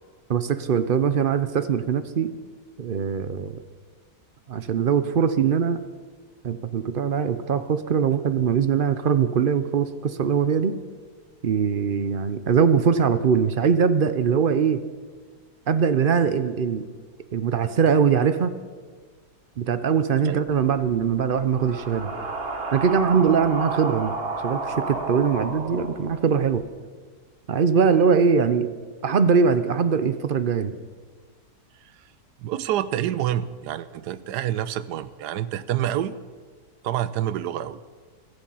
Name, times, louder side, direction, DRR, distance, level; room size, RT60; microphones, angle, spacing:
voice 1, 0.3-2.3 2.8-3.6 4.5-5.8 6.4-10.8 11.4-14.8 15.7-16.8 17.3-18.5 19.6-22.1 22.7-24.1 24.4-26.6 27.5-28.7 29.0-30.7, right 6 dB, 60° right, 11 dB, 0.5 m, -22 dB
sound 1, 20.5-26.6, right 3 dB, 40° right, 1.3 m, -32 dB
voice 2, 32.4-36.1 36.8-37.8, right 11 dB, 85° right, 15 dB, 1.2 m, -27 dB
16.0 x 13.5 x 5.6 m, 1.5 s
omnidirectional pair, 1.7 m